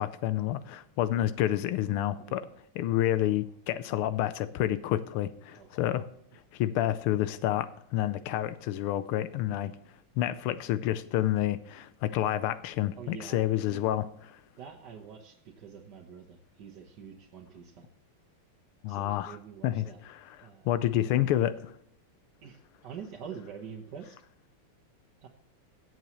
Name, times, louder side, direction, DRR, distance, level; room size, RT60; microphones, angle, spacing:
voice 1, 0.0-2.4 2.8-6.0 6.5-9.7 10.2-14.1 18.8-19.4 19.6-19.8 20.4-21.7, left 13 dB, 90° left, 12 dB, 1.5 m, -29 dB
voice 2, 2.2-2.6 3.1-3.5 5.5-5.9 6.7-7.0 9.5-9.9 13.0-13.9 14.6-17.9 18.8-20.0 20.4-21.4 22.4-24.2 25.2-25.3, right 7 dB, 55° right, 0 dB, 1.6 m, -47 dB
16.5 x 7.8 x 3.0 m, 0.68 s
omnidirectional pair, 2.3 m